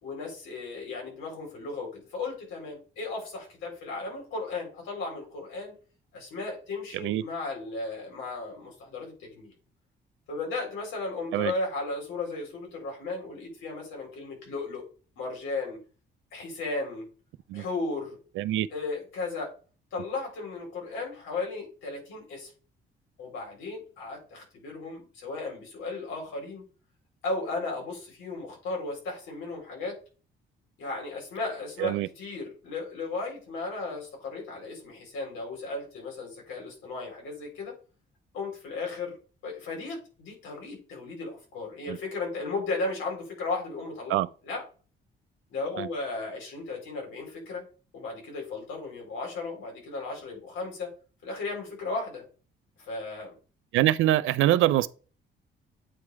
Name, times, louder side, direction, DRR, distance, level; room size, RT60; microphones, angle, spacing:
voice 1, 0.0-5.7 6.1-9.5 10.3-14.9 15.2-15.8 16.3-17.1 17.5-18.2 18.7-19.5 19.9-22.5 23.2-26.6 27.2-30.0 30.8-37.7 38.3-39.2 39.4-44.6 45.5-47.7 47.9-50.9 51.2-52.2 52.8-53.3, left 3 dB, 90° left, 3.8 m, -35 dB
voice 2, 18.4-18.7 31.8-32.1 41.9-42.0 44.1-44.3 45.8-45.9 53.7-54.9, right 14 dB, 85° right, 0.5 m, -24 dB
8.6 x 3.1 x 4.7 m
cardioid pair, 90°, 20 cm